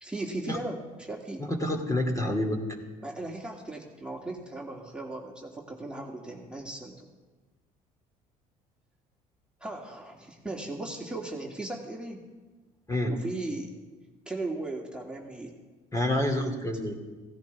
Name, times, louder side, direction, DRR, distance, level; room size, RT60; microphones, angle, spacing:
voice 1, 0.0-1.5 3.0-7.1 9.6-12.2 13.1-13.7 14.3-15.5, right 2 dB, 5° right, -2 dB, 2.4 m, -37 dB
voice 2, 1.5-2.6 12.9-13.1 15.9-16.9, left 1 dB, 15° left, 2 dB, 2.7 m, -27 dB
16.5 x 16.0 x 3.5 m, 1.3 s
hypercardioid pair, 60°, 19 cm